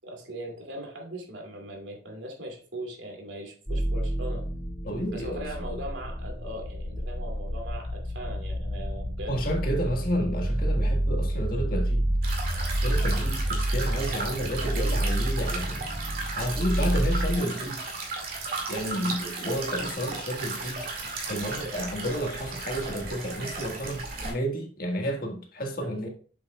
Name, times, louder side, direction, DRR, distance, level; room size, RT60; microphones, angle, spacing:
voice 1, 0.0-4.4 5.1-9.4 18.8-19.2 25.8-25.9, right 1 dB, 85° right, 2.6 m, -40 dB
sound 1, 3.7-17.4, right 1 dB, 30° left, 3.1 m, -29 dB
voice 2, 4.8-5.8 9.3-12.1 12.8-15.9 16.3-17.8 18.7-20.9 21.3-26.1, equal, 50° left, 1.6 m, -31 dB
sound 2, 12.2-24.3, right 3 dB, 55° right, 2.2 m, -35 dB
7.5 x 7.3 x 2.3 m
head